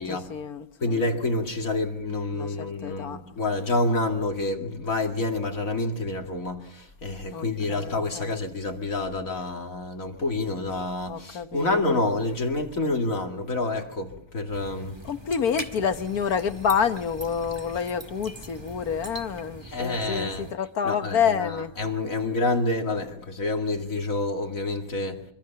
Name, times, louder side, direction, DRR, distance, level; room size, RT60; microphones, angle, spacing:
voice 1, 0.0-1.0 2.3-3.2 7.3-8.3 11.1-12.0 15.0-21.7, left 7 dB, 80° left, 1.7 m, -28 dB
voice 2, 0.8-15.0 19.6-20.5 20.8-25.2, left 2 dB, 60° left, 2.7 m, -28 dB
sound 1, 14.5-20.5, right 2 dB, 15° right, 1.9 m, -41 dB
25.0 x 25.0 x 5.8 m
omnidirectional pair, 1.6 m